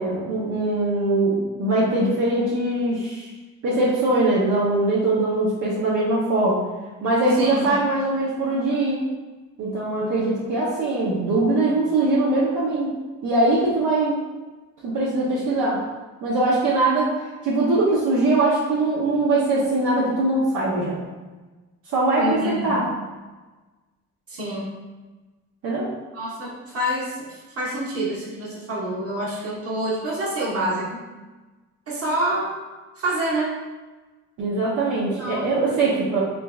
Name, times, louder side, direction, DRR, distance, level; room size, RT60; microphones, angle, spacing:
voice 1, 0.0-3.3 3.6-6.6 7.0-9.0 9.6-12.9 13.2-14.2 14.8-15.8 16.2-17.1 17.4-21.0 21.9-22.8 25.6-25.9 34.4-36.3, right 2 dB, 75° right, -6 dB, 0.9 m, -21 dB
voice 2, 7.4-7.7 22.2-22.8 24.3-24.7 26.1-31.0 31.9-32.5 33.0-33.5 35.2-35.5, right 1 dB, 50° right, -5 dB, 1.3 m, -27 dB
3.8 x 3.3 x 2.3 m, 1.2 s
cardioid pair, 90°, 30 cm